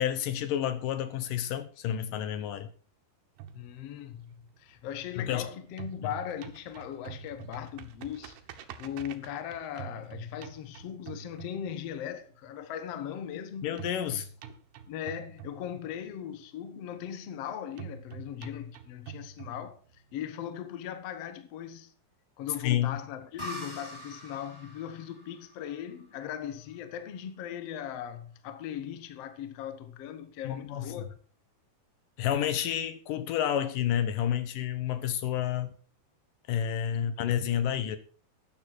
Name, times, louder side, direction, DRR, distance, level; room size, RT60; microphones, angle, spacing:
voice 1, 0.0-2.7 5.2-5.5 13.6-14.3 22.6-23.0 30.5-30.8 32.2-35.7 36.5-38.0, left 10 dB, 70° left, 2.3 m, -30 dB
sound 1, 3.4-5.4 5.7-12.1 13.8-16.1 17.8-20.1, right 8 dB, 75° right, 2.9 m, -46 dB
voice 2, 3.5-13.7 14.9-21.9 22.4-31.1 36.9-37.1, left 9 dB, 85° left, 1.4 m, -39 dB
sound 2, 23.4-26.9, equal, 10° left, 1.4 m, -45 dB
12.5 x 9.9 x 4.6 m
omnidirectional pair, 4.7 m